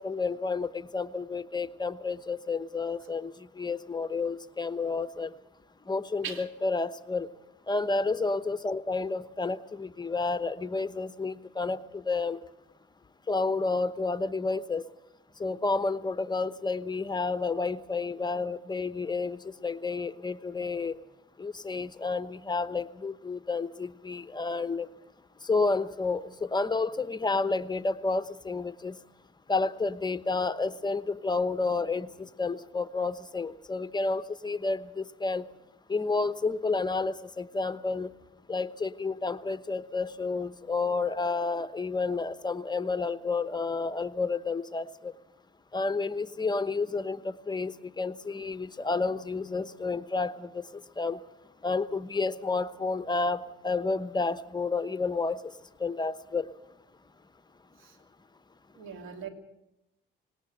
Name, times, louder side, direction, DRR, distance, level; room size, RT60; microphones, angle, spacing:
voice 1, 0.0-5.3 5.9-7.3 7.7-12.4 13.3-14.8 15.4-21.0 21.4-24.9 25.4-29.0 29.5-35.4 35.9-38.1 38.5-45.1 45.7-50.6 51.0-51.2 51.6-55.5 55.8-56.5, left 3 dB, 20° left, 12 dB, 0.9 m, -30 dB
voice 2, 58.8-59.3, right 7 dB, 90° right, 6 dB, 2.8 m, -39 dB
19.0 x 18.5 x 7.8 m, 0.88 s
cardioid pair, 90°, 20 cm